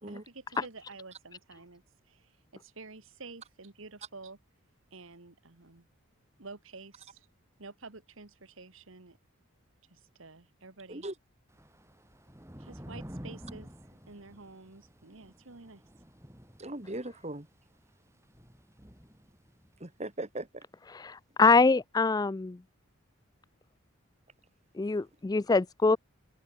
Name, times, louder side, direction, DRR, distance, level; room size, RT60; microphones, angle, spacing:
voice 1, 0.1-4.4 4.9-5.9 6.4-7.3 7.6-9.2 9.9-11.1 12.6-15.8, right 3 dB, 70° right, 1.6 m, -50 dB
Thunder / Rain, 11.5-19.9, equal, 15° right, 3.5 m, -50 dB
voice 2, 16.6-17.5 19.8-20.6 24.9-25.0, right 1 dB, 30° right, 2.0 m, -39 dB
voice 3, 20.9-22.6 24.7-26.0, left 4 dB, 20° left, 0.3 m, -24 dB
open air
head